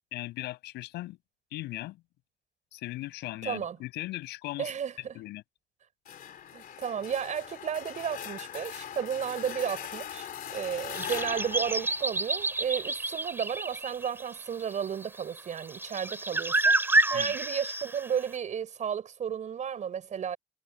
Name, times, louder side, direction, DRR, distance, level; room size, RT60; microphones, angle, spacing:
voice 1, 0.1-1.2 1.5-2.0 2.7-4.7 5.1-5.4 17.1-17.3, left 17 dB, 85° left, 6.0 m, -38 dB
voice 2, 3.4-3.8 4.6-5.2 6.5-16.8 17.1-20.4, right 8 dB, 45° right, 5.3 m, -33 dB
sound 1, 6.0-12.8, left 10 dB, 55° left, 2.9 m, -41 dB
sound 2, 10.9-18.3, right 2 dB, 15° right, 3.9 m, -29 dB
cardioid pair, 110°, 17 cm